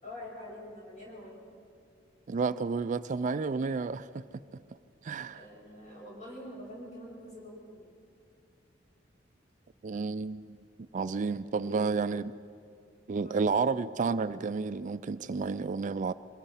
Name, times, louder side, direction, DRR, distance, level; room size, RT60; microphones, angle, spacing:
voice 1, 0.0-1.4 5.3-7.9 11.5-11.9 13.2-13.7, left 1 dB, 40° left, 6.5 m, -45 dB
voice 2, 2.3-4.2 5.0-5.5 9.8-10.6 10.9-12.3 13.1-16.1, right 4 dB, 40° right, 0.4 m, -31 dB
23.0 x 20.5 x 5.7 m
head